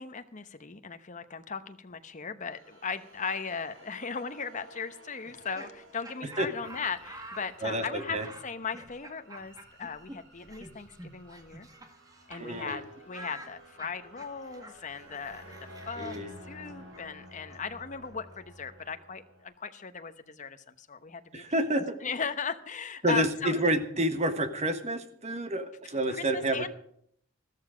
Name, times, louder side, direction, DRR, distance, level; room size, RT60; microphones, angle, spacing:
voice 1, 0.0-8.2 8.4-11.7 12.3-15.4 15.9-21.4 22.0-23.6 26.1-26.7, left 5 dB, 40° left, 10 dB, 0.9 m, -37 dB
sound 1, 2.4-19.4, equal, 70° right, 4.6 m, -53 dB
Laughter, 5.2-12.4 12.7-12.8 13.1-18.8, right 1 dB, 20° right, 1.6 m, -49 dB
voice 2, 7.6-8.3 12.3-12.8 16.0-16.3 21.3-21.9 23.0-26.7, right 1 dB, 35° right, 9 dB, 1.4 m, -29 dB
14.0 x 13.5 x 5.1 m, 0.65 s
head